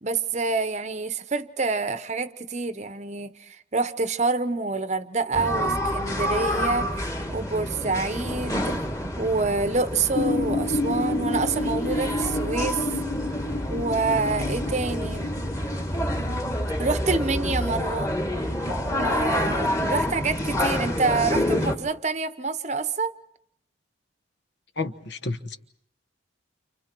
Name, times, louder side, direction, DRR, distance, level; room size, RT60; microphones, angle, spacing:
voice 1, 0.0-7.0 7.3-8.8 9.2-12.8 13.7-15.3 16.8-18.1 18.9-23.1, right 3 dB, 35° right, 0.9 m, -27 dB
sound 1, 5.3-21.8, equal, 15° left, 2.1 m, -28 dB
sound 2, 10.1-16.4, left 2 dB, 80° left, 1.2 m, -30 dB
voice 2, 24.8-25.6, left 3 dB, 60° left, 1.3 m, -31 dB
30.0 x 29.0 x 4.5 m
head